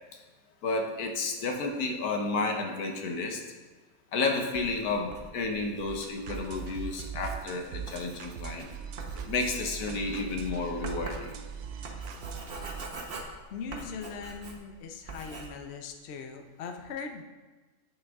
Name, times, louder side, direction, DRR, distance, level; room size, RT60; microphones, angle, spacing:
voice 1, 0.6-3.4 4.1-8.7 9.2-11.4, left 3 dB, 80° left, 3 dB, 1.5 m, -31 dB
Writing, 4.5-14.8 15.1-15.5, right 2 dB, 40° right, 1.1 m, -44 dB
sound 1, 5.9-12.9, right 8 dB, 65° right, 0.8 m, -40 dB
voice 2, 13.5-17.2, left 5 dB, 55° left, 5 dB, 0.8 m, -40 dB
8.5 x 6.8 x 3.6 m, 1.3 s
omnidirectional pair, 1.6 m